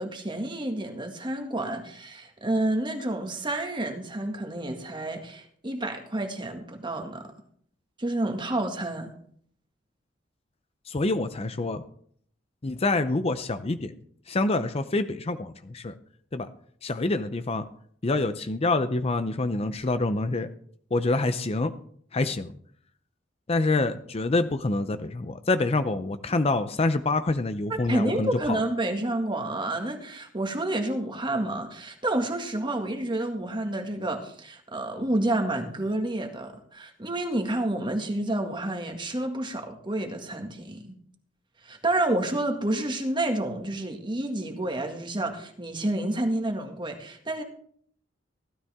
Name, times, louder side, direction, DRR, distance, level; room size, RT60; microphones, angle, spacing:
voice 1, 0.0-7.3 8.0-9.1 27.7-40.8 41.6-47.4, right 1 dB, 25° right, 1.8 m, -29 dB
voice 2, 10.9-11.8 12.6-13.9 14.3-15.9 16.3-16.5 16.8-17.6 18.0-20.5 20.9-21.7 22.1-22.5 23.5-28.6, left 2 dB, 30° left, 0.6 m, -26 dB
16.0 x 12.5 x 3.6 m
head